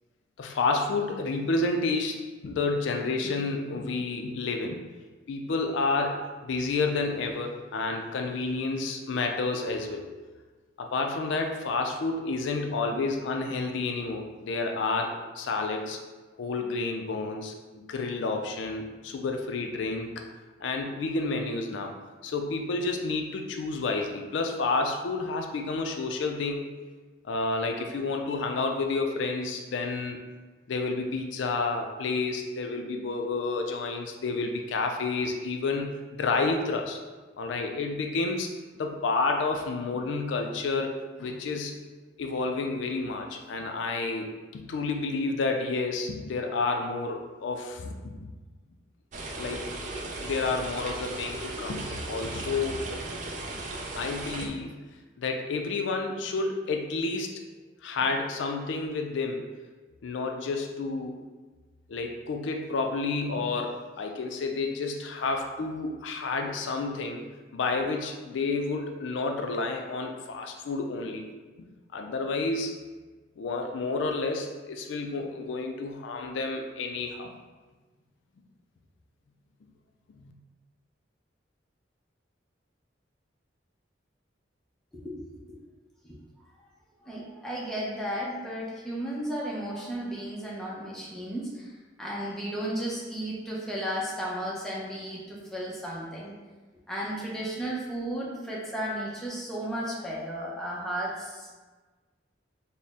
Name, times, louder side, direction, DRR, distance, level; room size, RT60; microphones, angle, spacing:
voice 1, 0.4-4.8 5.3-10.1 10.8-16.0 16.4-20.1 20.6-21.9 22.2-26.7 27.2-30.3 30.7-37.0 37.4-41.7 42.2-48.3 49.4-49.6 50.2-52.9 54.0-54.8 55.2-57.4 57.8-59.5 60.0-61.2 61.9-67.2 67.5-71.3 71.6-71.7 71.9-72.7 73.4-77.3 80.2-80.3, left 3 dB, 75° left, 3 dB, 0.4 m, -30 dB
sound 1, 49.1-54.5, right 2 dB, 40° right, 0.4 m, -36 dB
voice 2, 87.0-91.7 92.0-96.3 96.9-101.5, right 1 dB, 5° left, -6 dB, 0.6 m, -34 dB
4.0 x 2.1 x 3.5 m, 1.3 s
head